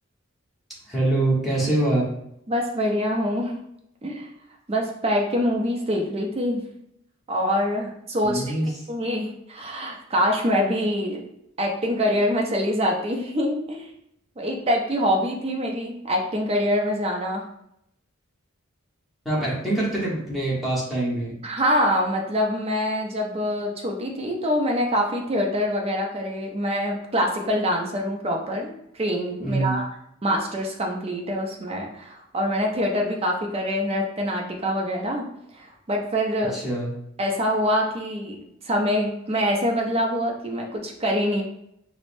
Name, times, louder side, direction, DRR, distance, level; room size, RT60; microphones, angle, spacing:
voice 1, 0.9-2.1 8.2-8.6 19.2-21.3 29.4-29.9 36.5-36.9, right 2 dB, ahead, -8 dB, 1.0 m, -24 dB
voice 2, 2.5-3.6 4.0-4.3 4.7-6.6 7.3-11.2 11.6-13.9 14.4-17.4 21.4-29.8 30.2-35.3 35.5-36.6 37.2-38.4 38.6-41.4, equal, 30° right, 0 dB, 0.5 m, -25 dB
4.7 x 2.1 x 2.6 m, 0.78 s
head